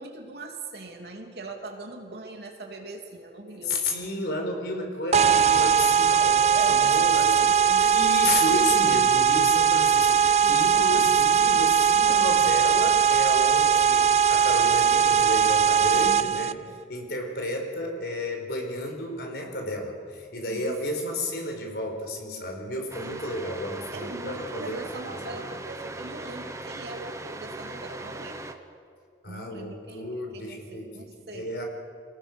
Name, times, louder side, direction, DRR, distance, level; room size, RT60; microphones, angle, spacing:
voice 1, 0.0-3.8 6.2-7.9 10.4-11.4 20.5-20.8 23.9-28.6 29.3-31.5, right 2 dB, 65° right, 2 dB, 3.0 m, -40 dB
voice 2, 3.6-6.4 6.7-7.4 7.8-16.6 16.9-24.8 25.3-25.4 29.2-31.1 31.3-31.6, left 1 dB, 65° left, 3 dB, 4.8 m, -32 dB
sound 1, 5.1-16.5, right 8 dB, 40° right, 0.5 m, -20 dB
sound 2, 22.9-28.5, right 2 dB, 15° right, 1.1 m, -39 dB
27.0 x 18.5 x 6.4 m, 2.2 s
head